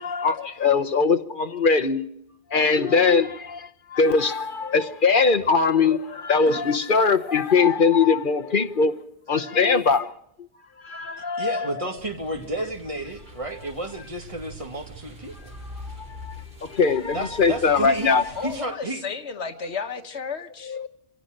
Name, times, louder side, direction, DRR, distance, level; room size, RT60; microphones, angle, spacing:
voice 1, 0.0-2.0 2.5-9.0 9.3-10.1 10.8-11.9 15.8-18.2 20.6-20.9, left 5 dB, 50° left, 1.1 m, -21 dB
sound 1, 4.0-5.1 6.5-8.1 8.5-9.0 9.5-10.0, right 5 dB, 85° right, 3.9 m, -46 dB
voice 2, 11.4-15.5 17.1-19.0, right 1 dB, 30° right, 2.3 m, -32 dB
sound 2, 12.0-18.6, equal, 65° right, 3.0 m, -43 dB
voice 3, 18.4-20.8, left 5 dB, 80° left, 1.5 m, -33 dB
24.5 x 16.5 x 6.5 m
omnidirectional pair, 1.1 m